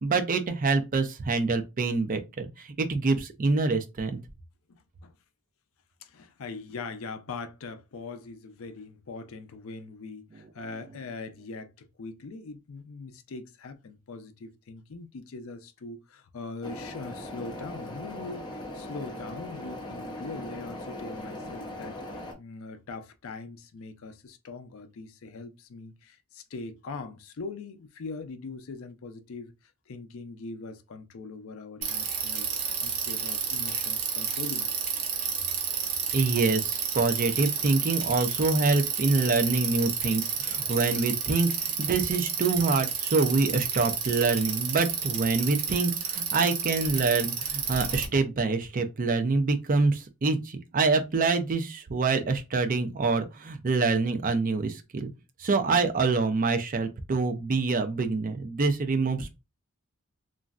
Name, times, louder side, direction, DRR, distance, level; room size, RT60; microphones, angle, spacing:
voice 1, 0.0-4.1 36.1-55.1 55.4-59.4, right 3 dB, 40° right, 0.4 m, -26 dB
voice 2, 4.7-5.2 6.0-29.5 29.9-34.9 48.1-48.2, left 3 dB, 65° left, 0.5 m, -41 dB
sound 1, 16.6-22.3, left 1 dB, 20° left, 0.6 m, -39 dB
Bicycle, 31.8-48.0, right 7 dB, 80° right, 0.8 m, -31 dB
3.0 x 2.5 x 2.4 m
head